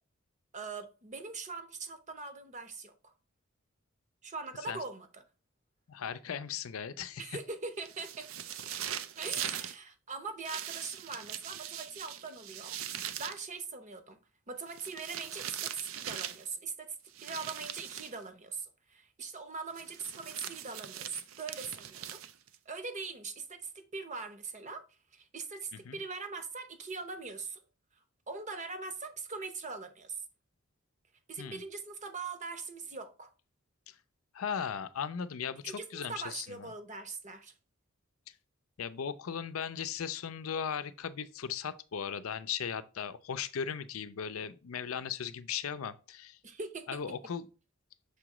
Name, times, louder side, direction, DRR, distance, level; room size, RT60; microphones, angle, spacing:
voice 1, 0.5-3.1 4.2-5.2 7.2-8.3 9.1-12.7 13.2-14.2 14.5-17.0 17.2-22.2 22.7-24.8 25.1-27.6 28.3-30.2 31.3-33.3 35.6-37.5 46.4-47.2, right 4 dB, 35° right, 0.8 m, -41 dB
voice 2, 5.9-7.4 25.7-26.0 31.4-31.6 33.9-34.0 34.3-36.7 38.8-46.4 46.9-47.5, left 7 dB, 90° left, 0.5 m, -37 dB
sound 1, 7.8-9.8 10.4-13.4 14.7-16.5 17.1-18.2 19.7-22.6, right 10 dB, 75° right, 0.5 m, -41 dB
6.7 x 3.0 x 4.8 m
head